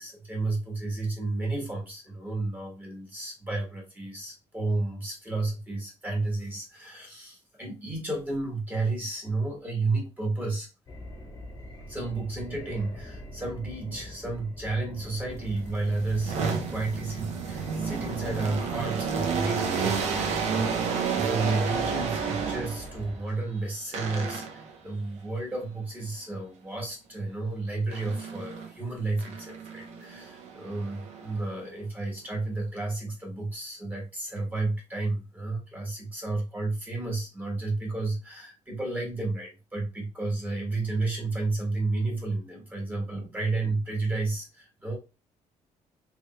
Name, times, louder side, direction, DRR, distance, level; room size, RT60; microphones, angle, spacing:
voice 1, 0.0-10.7 11.9-45.0, right 3 dB, 15° right, -1 dB, 1.3 m, -32 dB
sound 1, 10.9-23.2, left 1 dB, 30° left, 1.1 m, -44 dB
sound 2, 15.4-23.0 23.9-24.7 27.9-28.7 29.2-31.6, right 6 dB, 65° right, 0.8 m, -31 dB
3.4 x 3.3 x 2.9 m, 0.28 s
cardioid pair, 170°, 13 cm